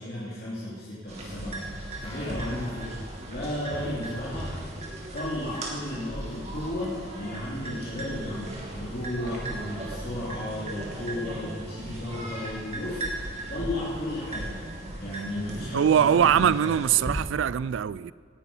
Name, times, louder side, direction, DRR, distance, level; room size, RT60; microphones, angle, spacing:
voice 1, 0.0-1.6 2.0-4.5 5.1-14.6 15.0-16.8, left 1 dB, 50° left, 3.1 m, -34 dB
sound 1, 1.1-17.2, right 1 dB, 35° right, 2.5 m, -37 dB
sound 2, 2.0-4.0, left 1 dB, 30° left, 2.6 m, -47 dB
voice 2, 15.7-18.1, right 8 dB, 75° right, 0.3 m, -22 dB
18.0 x 10.0 x 5.5 m
head